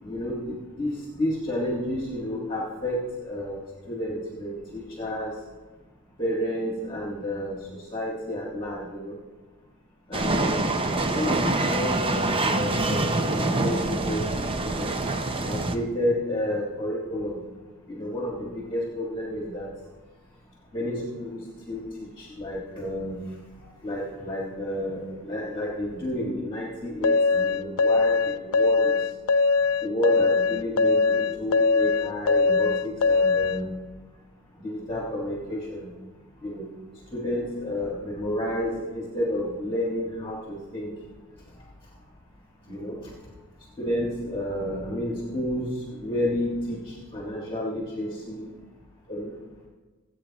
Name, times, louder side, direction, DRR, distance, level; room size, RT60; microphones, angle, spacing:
voice 1, 0.0-5.3 6.2-9.1 10.1-10.6 10.9-14.9 15.4-17.4 17.9-19.7 20.7-21.4 21.7-21.8 22.2-23.2 23.8-29.0 29.8-33.7 34.6-35.9 36.4-36.7 37.1-40.9 42.7-43.0 43.8-48.5 49.1-49.3, left 1 dB, 20° left, -4 dB, 1.7 m, -30 dB
sound 1, 10.1-15.8, right 2 dB, 25° right, 0.6 m, -25 dB
sound 2, 27.0-33.6, left 4 dB, 70° left, 0.4 m, -21 dB
25.0 x 8.4 x 3.0 m, 1.3 s
head